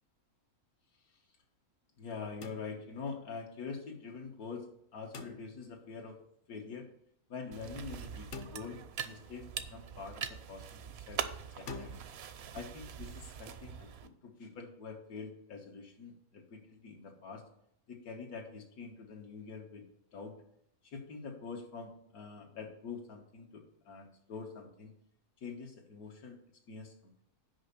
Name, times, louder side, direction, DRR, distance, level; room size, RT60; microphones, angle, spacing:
voice 1, 2.0-4.7 4.9-6.2 6.5-6.9 7.3-11.9 12.5-17.4 17.9-19.8 20.1-20.4 20.8-24.9 25.4-26.4 26.7-27.2, left 5 dB, 80° left, 1 dB, 1.7 m, -45 dB
sound 1, 2.4-3.2 5.1-5.9 8.3-9.2 11.7-12.0, left 3 dB, 50° left, 0.8 m, -47 dB
sound 2, 7.5-14.1, right 8 dB, 65° right, 0.6 m, -43 dB
6.2 x 5.2 x 6.7 m, 0.73 s
omnidirectional pair, 1.5 m